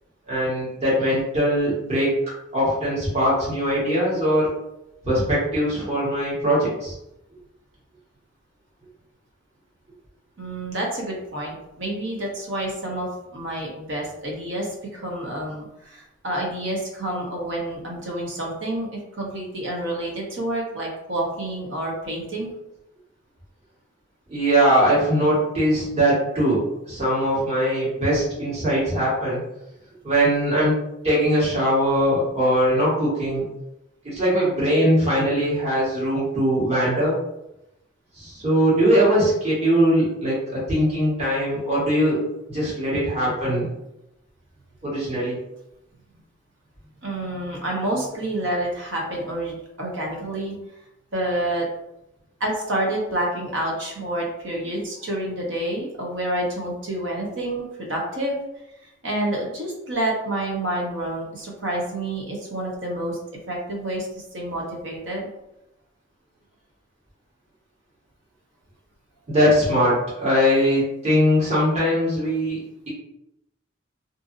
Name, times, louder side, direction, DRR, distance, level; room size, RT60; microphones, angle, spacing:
voice 1, 0.3-2.1 2.5-4.5 5.0-6.9 24.3-29.4 30.0-30.8 31.0-33.5 34.0-37.2 38.2-42.2 42.5-43.7 44.8-45.4 69.3-72.9, equal, 35° right, -8 dB, 1.3 m, -21 dB
voice 2, 10.4-22.5 46.1-46.2 47.0-50.6 51.1-51.7 52.4-58.3 59.0-63.2 63.5-64.1 64.3-65.3, right 1 dB, 70° right, -1 dB, 0.8 m, -28 dB
2.6 x 2.5 x 2.5 m, 0.86 s
head